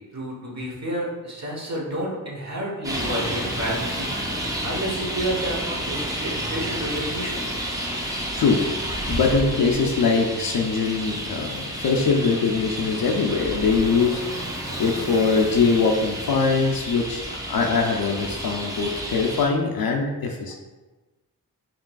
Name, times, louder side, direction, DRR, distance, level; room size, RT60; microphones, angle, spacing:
voice 1, 0.0-4.1 4.6-7.5, right 1 dB, 45° right, -4 dB, 1.1 m, -30 dB
Traffic noise roadway noise, 2.8-19.5, equal, 10° right, 0.6 m, -30 dB
voice 2, 8.3-8.7 9.1-20.6, left 4 dB, 70° left, 1 dB, 0.5 m, -22 dB
4.9 x 3.0 x 2.3 m, 1.2 s
wide cardioid pair, 80°, 37 cm